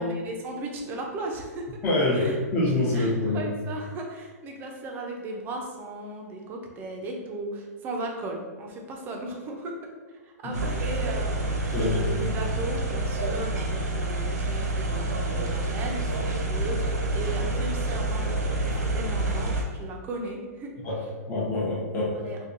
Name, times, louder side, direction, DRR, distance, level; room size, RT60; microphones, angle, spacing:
voice 1, 0.0-1.6 2.1-2.4 2.9-9.7 10.2-20.7 22.1-22.4, right 2 dB, 25° right, 0 dB, 0.6 m, -36 dB
voice 2, 1.8-3.4 10.4-10.6 11.7-12.0 20.8-22.2, left 2 dB, 25° left, -6 dB, 0.9 m, -26 dB
sound 1, 10.5-19.6, right 2 dB, 85° right, 0.8 m, -28 dB
4.3 x 2.3 x 2.5 m, 1.4 s
hypercardioid pair, 140°, 9 cm